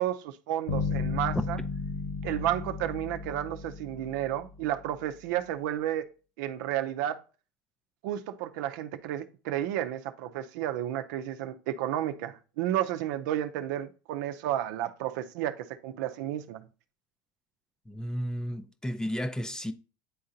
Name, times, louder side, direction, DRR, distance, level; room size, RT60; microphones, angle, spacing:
voice 1, 0.0-1.6 2.2-6.1 6.4-7.2 8.0-16.7, right 12 dB, 75° right, 0.6 m, -32 dB
sound 1, 0.7-4.6, left 4 dB, 60° left, 1.5 m, -34 dB
voice 2, 17.9-19.7, equal, 5° left, 0.5 m, -32 dB
9.3 x 3.8 x 2.7 m
supercardioid pair, 105°, 10 cm